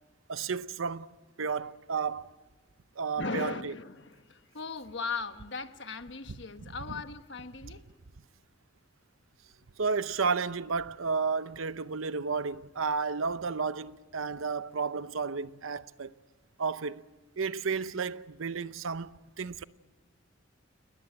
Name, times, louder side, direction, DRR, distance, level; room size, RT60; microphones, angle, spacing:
voice 1, 0.3-1.1 1.4-2.3 3.0-3.7 9.8-16.1 16.6-17.0 17.4-19.6, right 5 dB, 80° right, 0.8 m, -32 dB
voice 2, 3.1-7.8, left 4 dB, 60° left, 1.2 m, -38 dB
28.5 x 19.5 x 8.8 m
head